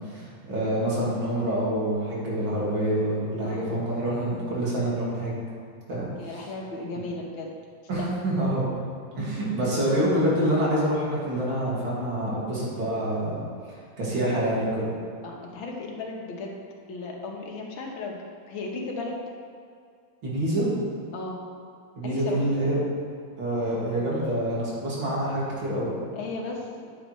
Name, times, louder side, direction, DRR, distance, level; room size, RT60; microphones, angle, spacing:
voice 1, 0.0-5.4 5.9-6.5 6.9-7.0 7.9-8.7 9.2-13.4 14.0-14.9 20.2-20.7 22.0-22.8 23.4-25.9, right 1 dB, 70° right, -6 dB, 3.0 m, -26 dB
voice 2, 6.2-7.5 8.0-8.1 15.2-16.6 16.9-18.2 18.5-19.2 21.1-21.4 22.0-22.4 26.1-26.9, left 3 dB, 75° left, 0 dB, 1.9 m, -35 dB
9.1 x 8.8 x 3.2 m, 2.3 s
omnidirectional pair, 2.3 m